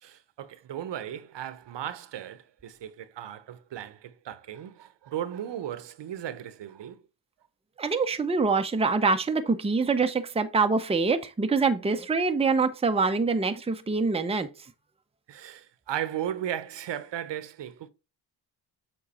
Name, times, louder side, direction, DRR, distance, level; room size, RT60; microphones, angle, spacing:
voice 1, 0.0-7.0 15.3-17.9, right 11 dB, 65° right, 0.9 m, -36 dB
voice 2, 7.8-14.5, right 4 dB, 15° right, 0.7 m, -25 dB
7.4 x 3.9 x 4.2 m
cardioid pair, 80°, 46 cm